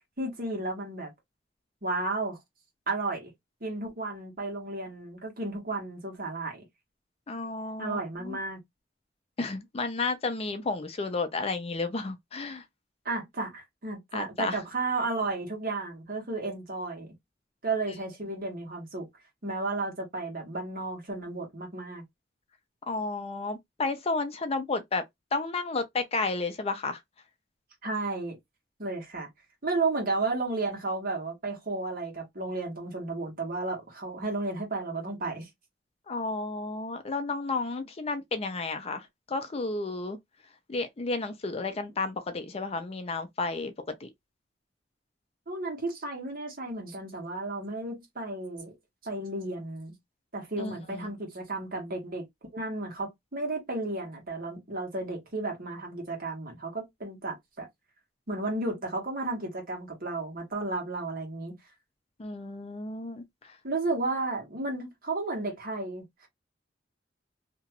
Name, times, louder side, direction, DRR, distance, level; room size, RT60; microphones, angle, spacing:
voice 1, 0.2-1.1 1.8-2.4 2.9-3.3 3.6-6.6 7.8-8.6 13.0-17.1 17.6-19.1 19.4-22.0 27.8-28.4 28.8-29.3 29.6-35.5 45.5-48.8 49.0-49.9 50.3-52.2 52.5-57.7 58.3-61.5 63.6-66.3, right 2 dB, 55° right, 1.4 m, -33 dB
voice 2, 7.3-8.4 9.4-12.6 14.1-14.6 22.9-25.0 25.3-27.0 36.1-40.2 40.7-44.1 50.6-51.1 62.2-63.6, left 3 dB, 35° left, 0.5 m, -32 dB
2.9 x 2.3 x 2.8 m
head